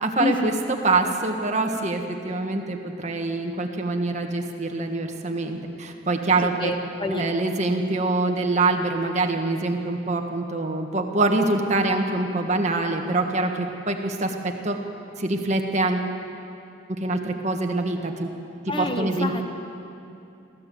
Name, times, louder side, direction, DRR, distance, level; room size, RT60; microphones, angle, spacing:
voice 1, 0.0-6.7 7.1-14.8 15.2-16.1 16.9-18.3 18.8-19.4, right 2 dB, 40° right, 3 dB, 1.6 m, -25 dB
voice 2, 6.6-7.3 18.7-19.4, left 3 dB, 25° left, 6 dB, 1.0 m, -28 dB
22.5 x 16.0 x 7.9 m, 2.7 s
head